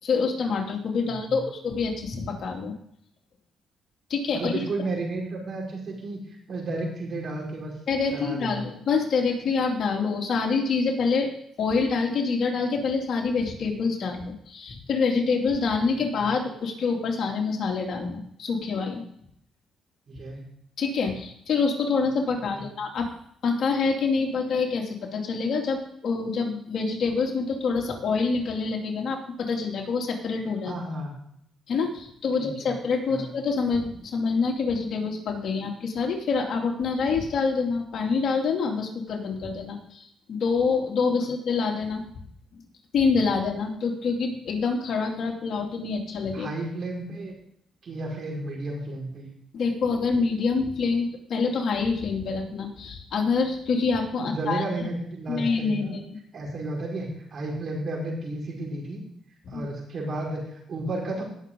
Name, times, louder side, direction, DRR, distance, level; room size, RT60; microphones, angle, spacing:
voice 1, 0.0-2.8 4.1-4.5 7.9-11.3 11.6-19.0 20.8-23.1 23.4-30.7 31.7-42.1 42.9-46.5 49.5-54.6 55.3-56.0 59.5-59.6, left 4 dB, 60° left, 1 dB, 2.7 m, -26 dB
voice 2, 1.0-1.4 4.3-6.2 6.5-7.7 8.1-8.7 20.1-20.4 22.5-22.6 30.6-31.1 32.4-32.7 33.1-33.3 46.3-47.4 47.8-49.3 54.2-56.0 56.3-59.0 59.5-61.2, right 2 dB, 50° right, -1 dB, 5.1 m, -32 dB
18.5 x 6.9 x 3.8 m, 0.68 s
cardioid pair, 90°, 0 cm